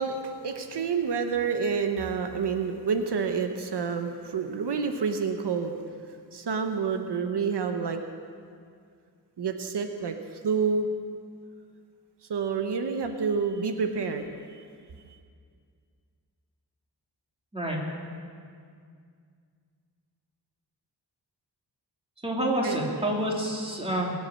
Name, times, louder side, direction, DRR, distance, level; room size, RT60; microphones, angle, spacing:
voice 1, 0.0-5.8 6.3-8.0 9.4-10.9 12.3-14.6 22.6-22.8 23.8-23.9, right 5 dB, 85° right, 6 dB, 1.0 m, -28 dB
voice 2, 22.2-24.1, right 1 dB, 15° right, -2 dB, 2.9 m, -28 dB
22.0 x 8.5 x 6.4 m, 2.2 s
wide cardioid pair, 90°, 40 cm